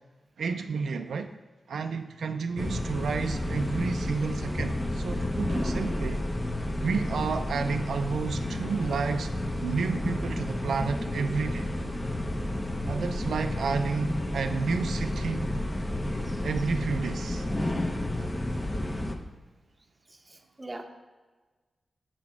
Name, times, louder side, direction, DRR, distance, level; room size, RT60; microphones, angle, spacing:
voice 1, 0.4-1.3 1.7-6.2 6.8-9.3 9.6-11.7 12.9-15.6 16.4-17.5 18.2-18.3, right 5 dB, 85° right, 7 dB, 0.3 m, -31 dB
sound 1, 2.6-19.2, left 1 dB, 20° left, 0.6 m, -31 dB
voice 2, 20.3-20.8, right 2 dB, 20° right, 4 dB, 0.7 m, -42 dB
7.5 x 4.0 x 5.9 m, 1.3 s
wide cardioid pair, 120°, 0 cm